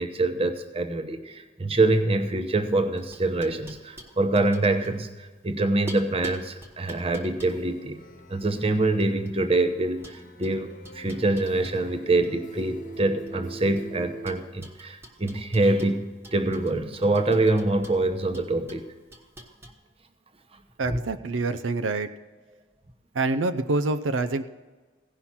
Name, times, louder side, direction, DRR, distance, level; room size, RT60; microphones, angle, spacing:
voice 1, 0.0-8.0 8.3-16.0 16.3-18.9, right 2 dB, 30° right, 7 dB, 0.9 m, -25 dB
sound 1, 2.7-5.5 5.9-9.6 10.0-12.3 12.6-13.9 14.2-19.7, right 1 dB, 15° right, 1.1 m, -47 dB
sound 2, 7.5-14.3, right 2 dB, 45° left, 1.1 m, -43 dB
voice 2, 20.8-22.1 23.1-24.5, right 3 dB, 90° right, 10 dB, 0.6 m, -26 dB
16.5 x 5.7 x 5.9 m, 1.3 s
head